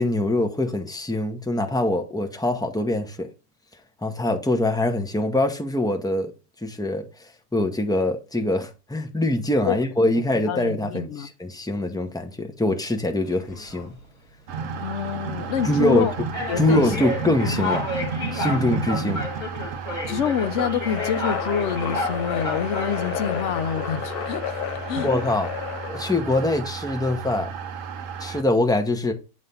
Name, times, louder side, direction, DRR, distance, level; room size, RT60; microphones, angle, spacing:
voice 1, 0.0-3.3 4.0-6.3 6.6-13.9 15.6-16.1 16.6-17.9 18.3-19.2 25.0-25.5 25.9-27.5 28.2-29.1, left 1 dB, 5° left, 0.5 m, -23 dB
voice 2, 10.4-11.3 14.8-16.1 16.5-16.9 20.1-24.6 24.9-25.1, left 8 dB, 65° left, 0.8 m, -27 dB
sound 1, 13.3-13.8 14.6-14.8 15.6-15.7 16.3-23.6, left 2 dB, 40° left, 2.3 m, -31 dB
sound 2, 14.5-28.4, right 5 dB, 65° right, 1.1 m, -33 dB
sound 3, 20.9-26.3, left 11 dB, 85° left, 1.1 m, -32 dB
8.0 x 3.1 x 5.5 m
omnidirectional pair, 1.6 m